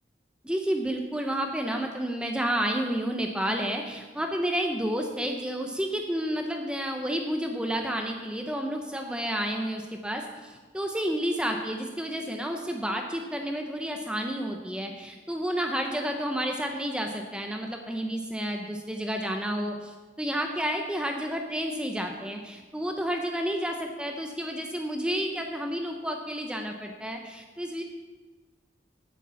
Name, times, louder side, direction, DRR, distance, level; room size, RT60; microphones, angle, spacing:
voice 1, 0.4-27.8, equal, 5° right, 3 dB, 0.7 m, -30 dB
8.9 x 8.4 x 7.0 m, 1.3 s
head